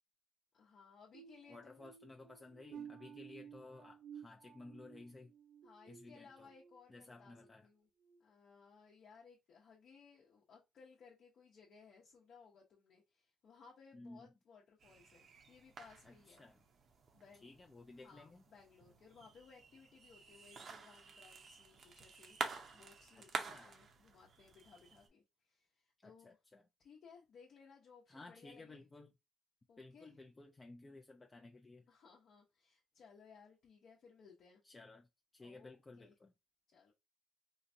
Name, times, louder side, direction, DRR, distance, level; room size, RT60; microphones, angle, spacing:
voice 1, 0.5-1.9 5.6-7.9 8.2-16.4 17.1-17.5 18.0-26.4 26.8-28.8 29.7-30.1 31.9-34.6 35.4-36.1 36.7-36.9, left 5 dB, 65° left, 0.8 m, -62 dB
sound 1, 1.1-6.8 7.2-7.5 8.0-8.2, right 8 dB, 80° right, 0.9 m, -55 dB
voice 2, 1.5-5.3 5.9-6.5 6.9-7.7 13.9-14.3 16.0-16.6 17.3-18.4 23.2-23.8 26.0-26.6 28.1-29.1 29.8-31.9 34.6-35.1 35.3-36.3, left 2 dB, 25° left, 0.4 m, -56 dB
sound 2, 14.8-25.1, right 5 dB, 55° right, 0.7 m, -49 dB
3.9 x 2.1 x 2.6 m
cardioid pair, 90°, 0 cm